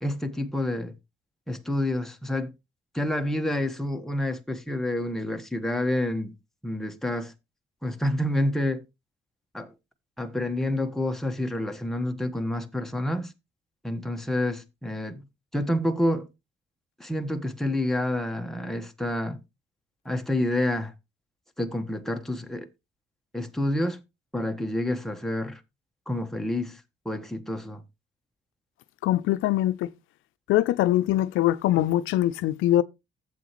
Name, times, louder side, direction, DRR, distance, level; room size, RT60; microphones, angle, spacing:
voice 1, 0.0-0.9 1.5-2.5 2.9-6.3 6.6-7.3 7.8-8.8 9.5-9.7 10.2-13.3 13.8-15.3 15.5-16.3 17.0-19.4 20.0-20.9 21.6-22.7 23.3-24.0 24.3-25.6 26.1-27.8, left 1 dB, ahead, 1.4 m, -28 dB
voice 2, 29.0-29.9 30.5-32.8, left 14 dB, 90° left, 0.5 m, -23 dB
12.0 x 7.9 x 3.1 m
cardioid pair, 90°, 20 cm